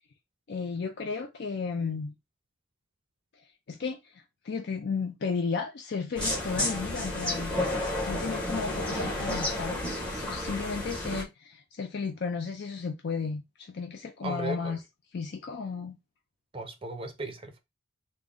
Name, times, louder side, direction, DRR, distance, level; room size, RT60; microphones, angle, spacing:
voice 1, 0.5-2.1 3.7-7.5 8.1-14.8 15.1-16.0, left 5 dB, 50° left, 0.4 m, -34 dB
sound 1, 6.2-11.2, left 1 dB, 5° left, 0.9 m, -31 dB
voice 2, 14.2-14.7 16.5-17.6, right 3 dB, 25° right, 0.5 m, -36 dB
3.6 x 2.1 x 3.6 m
head